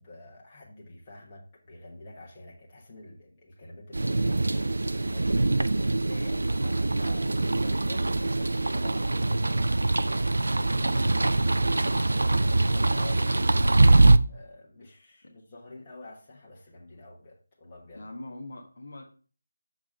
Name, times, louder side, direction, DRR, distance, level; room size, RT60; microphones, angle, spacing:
voice 1, 0.0-9.7 10.3-10.9 11.6-13.8 14.3-18.1, left 2 dB, 20° left, -4 dB, 1.3 m, -47 dB
sound 1, 3.9-14.2, right 2 dB, 55° right, 0.4 m, -23 dB
voice 2, 17.9-19.0, left 1 dB, 50° left, 2 dB, 1.1 m, -41 dB
6.2 x 3.6 x 5.2 m, 0.38 s
figure-of-eight pair, 160°, 0 cm